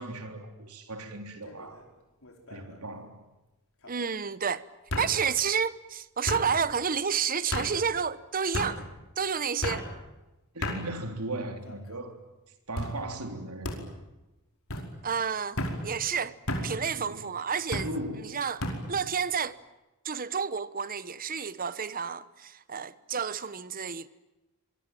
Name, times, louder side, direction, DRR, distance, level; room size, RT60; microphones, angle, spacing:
voice 1, 0.0-1.8 2.5-3.2 10.5-12.2 12.7-13.8 17.0-17.3 17.8-18.3, right 1 dB, 85° right, 3.7 m, -38 dB
sound 1, 1.4-1.8 2.2-2.8 3.8-3.9 4.9-5.1 6.3-6.5 7.5-7.7 8.5-8.7 9.6-9.8 10.6-10.8 11.5-12.0 12.8-12.9 13.6-13.8 14.7-14.9 15.6-15.8 16.5-16.7 17.7-17.9 18.6-18.8, left 1 dB, 65° left, 5.2 m, -32 dB
voice 2, 3.9-4.6 5.0-8.9 9.2-9.9 15.0-16.3 16.6-17.9 18.2-18.6 18.9-19.6 20.0-24.1, right 6 dB, 40° right, 1.0 m, -30 dB
26.0 x 23.0 x 9.2 m
head